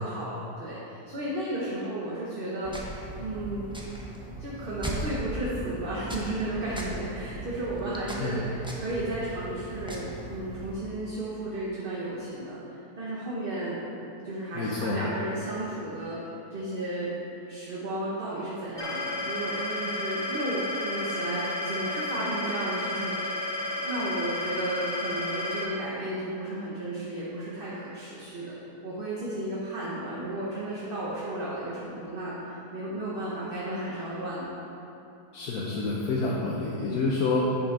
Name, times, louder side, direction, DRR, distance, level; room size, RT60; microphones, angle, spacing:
voice 1, 0.0-2.7 3.2-3.7 4.4-8.4 8.7-13.8 14.2-17.1 17.5-23.5 23.8-28.5 28.8-34.5, right 1 dB, 40° right, -7 dB, 1.1 m, -33 dB
sound 1, 2.6-10.7, right 1 dB, 5° right, 0.4 m, -38 dB
voice 2, 8.2-8.6 14.5-15.0 35.3-37.6, left 3 dB, 65° left, -5 dB, 1.3 m, -28 dB
sound 2, 18.8-25.6, left 2 dB, 20° left, 0.7 m, -32 dB
11.0 x 5.6 x 3.9 m, 2.9 s
omnidirectional pair, 1.7 m